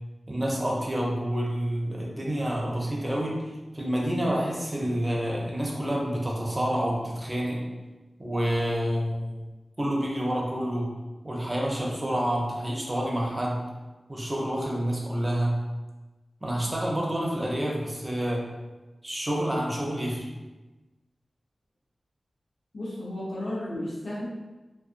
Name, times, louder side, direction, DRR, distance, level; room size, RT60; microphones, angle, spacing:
voice 1, 0.3-7.6 8.2-9.3 9.8-10.9 11.2-13.6 14.1-15.5 16.4-18.5 19.0-20.3, equal, 30° right, -3 dB, 0.6 m, -28 dB
voice 2, 22.7-24.3, left 1 dB, 85° left, -7 dB, 0.8 m, -33 dB
2.4 x 2.2 x 2.5 m, 1.2 s
cardioid pair, 45°, 0 cm